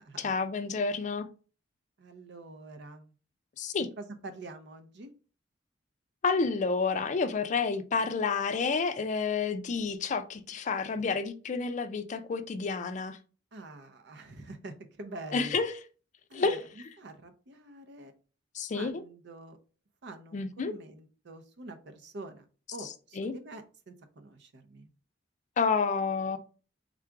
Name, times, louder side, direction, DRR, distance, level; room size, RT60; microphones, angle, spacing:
voice 1, 0.2-1.3 3.6-3.9 6.2-13.2 15.3-15.8 16.3-16.6 18.5-19.0 20.3-20.7 23.2-23.3 25.6-26.4, left 4 dB, 40° left, 0.4 m, -29 dB
voice 2, 2.0-3.1 4.0-5.1 13.5-15.6 16.3-16.6 17.0-18.1 18.7-19.6 20.0-22.4 22.7-24.9, right 2 dB, 65° right, 0.6 m, -46 dB
3.7 x 2.4 x 4.5 m
head